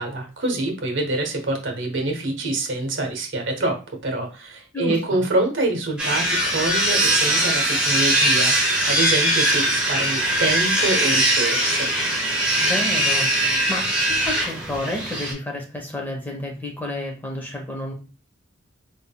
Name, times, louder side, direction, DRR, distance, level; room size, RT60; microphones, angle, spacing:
voice 1, 0.0-11.9, right 2 dB, 65° right, 3 dB, 1.0 m, -26 dB
voice 2, 4.7-5.2 12.6-17.9, left 1 dB, 10° left, 0 dB, 1.0 m, -31 dB
sound 1, 6.0-15.3, right 1 dB, 5° right, 1.3 m, -21 dB
3.7 x 3.5 x 2.2 m, 0.35 s
head